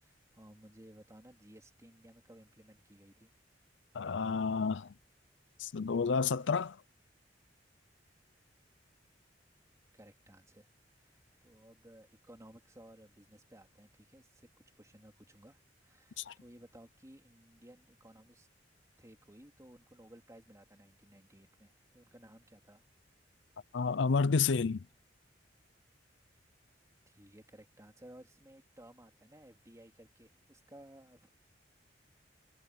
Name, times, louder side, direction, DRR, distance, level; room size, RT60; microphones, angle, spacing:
voice 1, 0.0-3.3 9.9-10.7 11.0-14.5 14.8-18.5 19.0-22.8 27.1-31.3, right 1 dB, 15° right, 3.6 m, -57 dB
voice 2, 3.9-4.9 5.6-6.8 16.2-16.3 23.7-24.8, left 5 dB, 80° left, 0.5 m, -30 dB
head